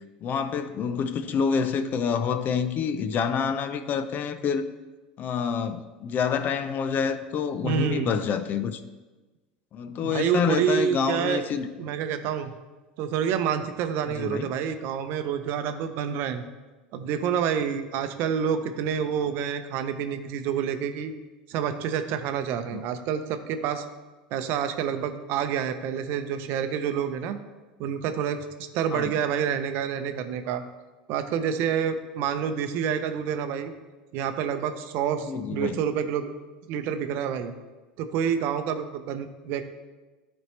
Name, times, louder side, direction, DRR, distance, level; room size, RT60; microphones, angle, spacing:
voice 1, 0.2-4.6 5.2-8.8 9.7-11.7 14.1-14.5 22.7-22.8 28.9-29.1 35.3-35.8, left 6 dB, 40° left, 11 dB, 0.5 m, -27 dB
voice 2, 7.6-8.1 10.0-11.4 11.8-12.5 13.0-16.5 16.9-21.1 21.5-23.8 24.3-27.4 27.8-28.5 28.7-30.6 31.1-33.7 34.1-36.3 36.7-37.5 38.0-39.6, right 8 dB, 55° right, 9 dB, 0.6 m, -28 dB
12.0 x 4.4 x 3.2 m, 1.2 s
hypercardioid pair, 85°, 5 cm